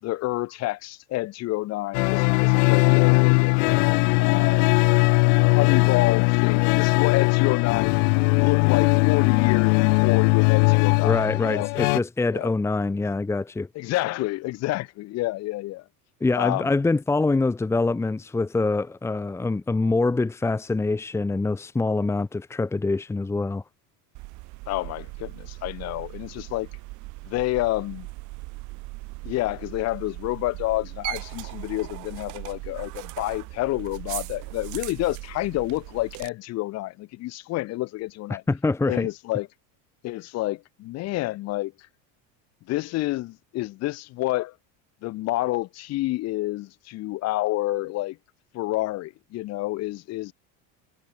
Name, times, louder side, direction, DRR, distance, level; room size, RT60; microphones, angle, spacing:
voice 1, 0.0-3.8 4.2-4.6 5.3-8.0 8.4-11.7 12.3-12.5 13.8-15.8 16.4-16.7 24.7-26.7 27.2-28.1 29.2-38.4 38.9-39.5 40.0-41.7 42.7-44.5 45.0-48.2 48.5-50.3, left 18 dB, 40° left, 3.8 m, -29 dB
sound 1, 1.9-12.0, left 36 dB, 65° left, 0.6 m, -19 dB
voice 2, 11.0-13.7 16.2-23.6 38.3-39.1, left 3 dB, 5° left, 1.6 m, -25 dB
sound 2, 24.1-36.3, right 24 dB, 50° right, 3.3 m, -38 dB
cardioid pair, 180°, 38 cm